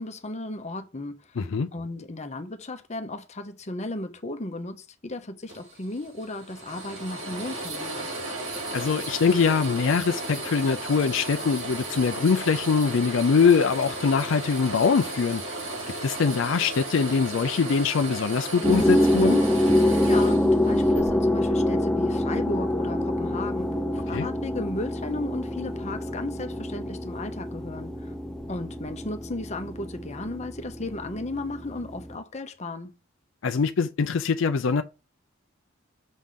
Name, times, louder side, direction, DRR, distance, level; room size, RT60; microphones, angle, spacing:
voice 1, 0.0-1.4 1.7-8.1 20.0-28.1 28.5-32.9, left 2 dB, 35° left, 0.8 m, -35 dB
voice 2, 1.4-1.7 8.7-15.4 16.0-19.4 24.1-24.3 33.4-34.8, left 5 dB, 65° left, 0.4 m, -23 dB
sound 1, 5.5-21.0, right 2 dB, 85° right, 4.5 m, -35 dB
sound 2, 18.6-32.2, left 1 dB, 5° left, 0.7 m, -25 dB
6.3 x 3.6 x 5.7 m
head